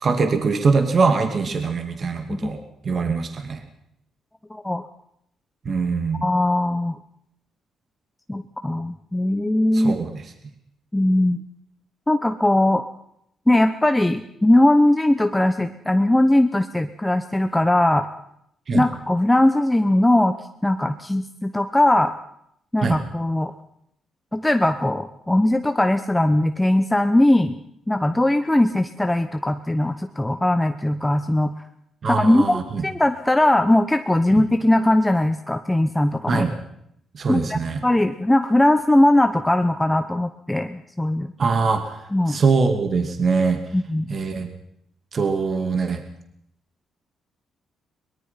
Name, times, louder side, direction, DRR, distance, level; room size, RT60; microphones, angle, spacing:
voice 1, 0.0-2.6 2.8-3.6 5.6-6.3 9.7-10.2 18.7-18.9 22.8-23.0 32.0-32.9 34.3-34.4 36.3-36.5 37.1-37.8 41.4-42.0 42.3-43.6 44.1-44.5 45.1-46.0, right 4 dB, 30° right, 6 dB, 2.5 m, -22 dB
voice 2, 4.5-4.8 6.2-7.0 8.3-10.0 10.9-11.4 12.1-12.9 13.5-18.1 18.7-20.3 20.6-22.1 22.7-23.5 24.3-27.6 27.9-31.5 32.1-36.4 37.3-41.3 42.1-42.4 43.7-44.1, left 1 dB, 5° left, 8 dB, 0.9 m, -20 dB
23.5 x 22.0 x 5.8 m, 0.74 s
cardioid pair, 180°, 0 cm